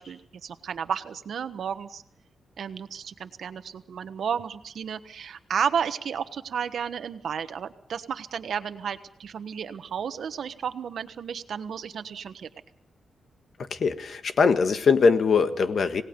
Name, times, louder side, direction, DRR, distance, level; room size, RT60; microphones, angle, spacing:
voice 1, 0.0-2.0 2.6-12.5, right 7 dB, 70° right, 10 dB, 1.3 m, -32 dB
voice 2, 13.7-16.0, left 5 dB, 55° left, 9 dB, 1.5 m, -21 dB
27.5 x 18.5 x 5.3 m, 0.65 s
wide cardioid pair, 115°, 0 cm